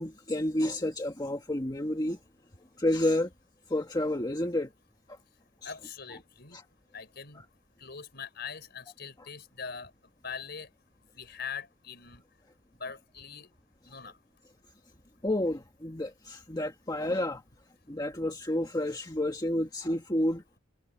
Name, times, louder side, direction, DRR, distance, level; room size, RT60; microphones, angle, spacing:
voice 1, 0.0-2.2 2.8-3.3 3.7-4.7 5.1-5.2 6.5-6.6 15.2-17.4 17.9-20.4, left 1 dB, 20° left, 1.5 m, -30 dB
voice 2, 5.6-6.6 6.9-7.5 7.8-9.9 10.2-10.7 11.1-12.2 12.8-13.5 13.9-14.2, left 6 dB, 55° left, 4.9 m, -42 dB
head